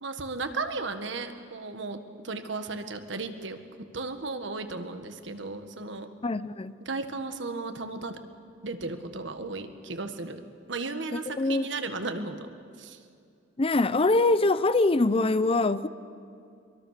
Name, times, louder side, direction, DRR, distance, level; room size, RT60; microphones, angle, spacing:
voice 1, 0.0-2.0 2.2-3.6 3.9-6.1 6.8-8.2 8.6-10.4 10.7-12.5 12.8-13.0, right 3 dB, 70° right, 8 dB, 1.6 m, -35 dB
voice 2, 6.2-6.8 11.1-11.7 13.6-15.9, left 2 dB, 30° left, 15 dB, 0.6 m, -24 dB
24.0 x 23.0 x 6.7 m, 2.4 s
head